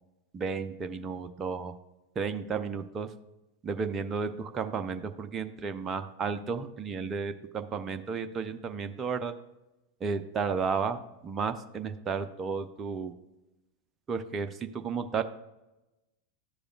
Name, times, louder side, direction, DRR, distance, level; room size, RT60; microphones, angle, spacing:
voice 1, 0.3-1.7 2.2-3.1 3.6-9.3 10.0-13.1 14.1-15.2, right 5 dB, 25° right, 8 dB, 0.6 m, -33 dB
12.5 x 4.9 x 2.4 m, 0.98 s
figure-of-eight pair, 90°, 0 cm